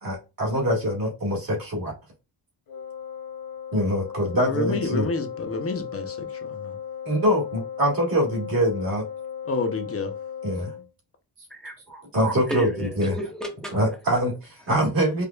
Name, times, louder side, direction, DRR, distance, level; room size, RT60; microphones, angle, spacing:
voice 1, 0.0-1.9 3.7-5.1 7.1-9.0 10.4-10.7 12.1-12.7 13.0-13.2 13.7-15.2, equal, 55° right, 1.7 m, -24 dB
Wind instrument woodwind instrument, 2.7-10.9, left 8 dB, 55° left, 1.0 m, -36 dB
voice 2, 4.3-6.8 9.5-10.1 10.6-10.7, left 4 dB, 35° left, 0.6 m, -29 dB
voice 3, 11.5-13.7, right 1 dB, ahead, 0.8 m, -33 dB
4.9 x 2.3 x 2.2 m
wide cardioid pair, 135°, 41 cm